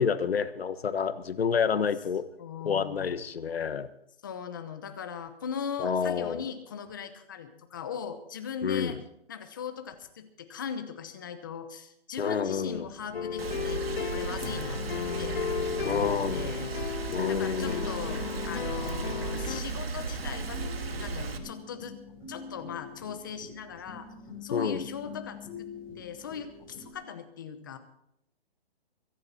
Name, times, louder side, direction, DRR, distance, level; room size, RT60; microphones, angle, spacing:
voice 1, 0.0-2.2 2.6-3.9 5.8-6.4 8.6-8.9 12.2-12.9 15.8-16.6 17.1-17.9 24.5-24.9, left 6 dB, 75° left, 13 dB, 1.3 m, -29 dB
voice 2, 2.4-3.1 4.2-9.0 9.3-14.8 15.2-15.4 15.9-20.6 21.0-22.0 22.3-24.1 24.4-25.7 25.9-27.8, left 7 dB, 20° left, 9 dB, 0.9 m, -39 dB
sound 1, 12.4-26.9, left 5 dB, 5° left, 7.3 m, -47 dB
sound 2, 13.1-19.6, left 7 dB, 50° left, 1.0 m, -34 dB
Rain, 13.4-21.4, right 4 dB, 75° right, 2.1 m, -35 dB
23.0 x 10.5 x 4.2 m, 0.76 s
hypercardioid pair, 175°, 31 cm